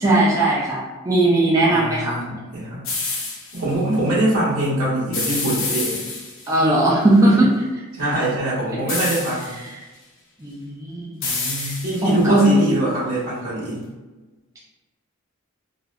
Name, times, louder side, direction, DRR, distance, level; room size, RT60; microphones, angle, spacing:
voice 1, 0.0-2.2 6.5-7.7 10.4-11.2 11.6-11.7 12.0-12.5, right 2 dB, 15° right, -5 dB, 0.3 m, -18 dB
voice 2, 1.6-2.8 3.5-6.0 7.9-9.6 11.2-13.8, right 1 dB, 80° right, -9 dB, 1.3 m, -23 dB
sound 1, 2.8-3.6 5.1-6.6 8.9-9.7 11.2-12.3, left 3 dB, 60° left, 0.6 m, -28 dB
3.2 x 2.4 x 2.2 m, 1.2 s
head